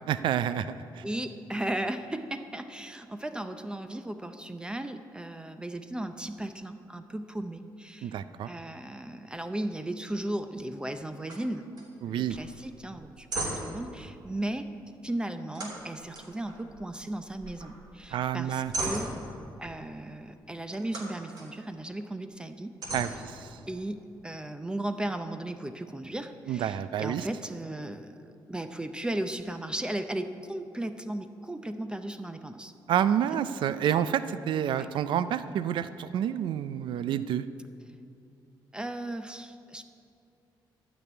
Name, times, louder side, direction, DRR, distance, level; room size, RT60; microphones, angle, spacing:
voice 1, 0.1-1.0 8.0-8.5 12.0-12.4 18.1-18.7 22.9-23.6 26.5-27.3 32.9-37.4, right 9 dB, 70° right, 13 dB, 0.4 m, -29 dB
voice 2, 1.0-8.1 8.4-11.7 12.1-14.7 15.0-19.1 19.6-23.1 23.7-32.7 34.8-34.9 38.7-39.8, right 1 dB, 10° right, 8 dB, 0.5 m, -36 dB
sound 1, 11.3-11.5 11.7-11.9 12.3-12.5 12.9-13.9 15.5-17.0 17.3-17.8 18.2-19.5 20.7-21.5 22.0-22.1 22.8-23.8, right 2 dB, 55° right, 3.2 m, -37 dB
12.0 x 6.1 x 9.4 m, 2.5 s
cardioid pair, 120°, 8 cm